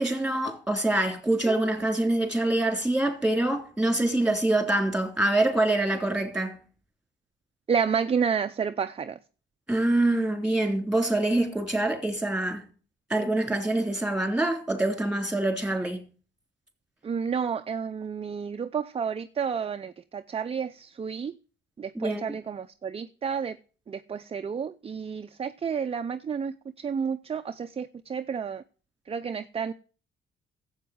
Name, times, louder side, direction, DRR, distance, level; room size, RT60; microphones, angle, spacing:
voice 1, 0.0-6.6 9.7-12.7 13.1-16.0 21.9-22.2, right 1 dB, 5° right, 3.4 m, -25 dB
voice 2, 7.7-9.2 17.0-21.3 21.8-23.6 23.9-28.6 29.1-29.7, right 6 dB, 30° right, 0.6 m, -30 dB
12.0 x 8.1 x 7.7 m
cardioid pair, 90°, 20 cm